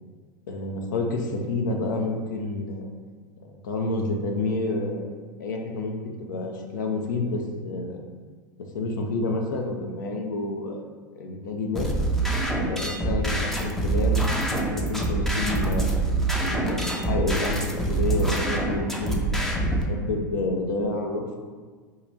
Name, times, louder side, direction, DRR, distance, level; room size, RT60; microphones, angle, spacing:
voice 1, 0.5-2.9 3.4-5.1 5.4-8.0 8.6-10.8 11.1-11.9 12.6-15.9 16.4-17.6 17.9-21.4, left 2 dB, 75° left, 2 dB, 0.6 m, -29 dB
sound 1, 11.7-19.8, right 2 dB, 5° left, 0.5 m, -25 dB
2.9 x 2.4 x 3.9 m, 1.5 s
hypercardioid pair, 95°, 10 cm